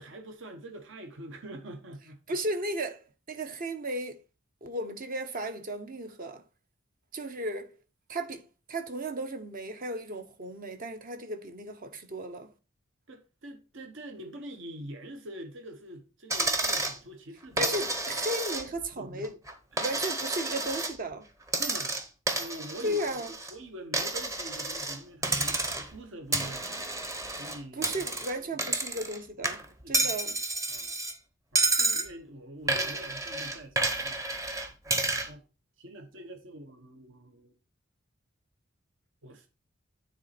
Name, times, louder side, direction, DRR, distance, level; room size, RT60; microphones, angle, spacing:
voice 1, 0.0-2.4 13.1-17.7 19.0-19.3 19.7-19.8 21.6-22.0 22.4-23.1 23.5-26.7 27.4-28.0 28.4-28.6 29.5-30.1 30.7-31.0 31.5-34.2 35.3-35.5 35.8-37.5 39.2-39.5, right 1 dB, 65° right, 1.1 m, -45 dB
voice 2, 2.3-4.2 4.6-6.4 7.1-7.7 8.1-8.4 8.7-12.5 17.6-19.3 19.8-21.3 22.8-23.3 27.7-30.4 31.8-32.0, right 1 dB, 45° right, 0.9 m, -35 dB
Coin (dropping), 16.3-17.0 17.6-18.9 19.2-20.9 21.5-23.5 23.9-25.0 25.2-26.0 26.3-29.2 29.4-31.1 31.5-32.1 32.7-35.3, right 2 dB, 15° right, 0.8 m, -30 dB
9.5 x 4.0 x 4.2 m
head